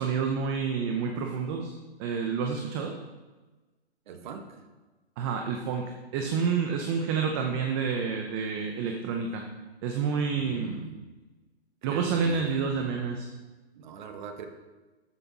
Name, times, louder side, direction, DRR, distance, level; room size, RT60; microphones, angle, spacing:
voice 1, 0.0-1.7 2.0-2.9 5.2-9.4 9.8-10.9 11.8-13.3, right 6 dB, 25° right, 3 dB, 0.7 m, -29 dB
voice 2, 4.1-4.6 10.4-11.1 11.8-12.9 13.8-14.5, right 6 dB, 45° right, 6 dB, 1.3 m, -41 dB
13.0 x 5.7 x 4.1 m, 1.2 s
hypercardioid pair, 150°, 32 cm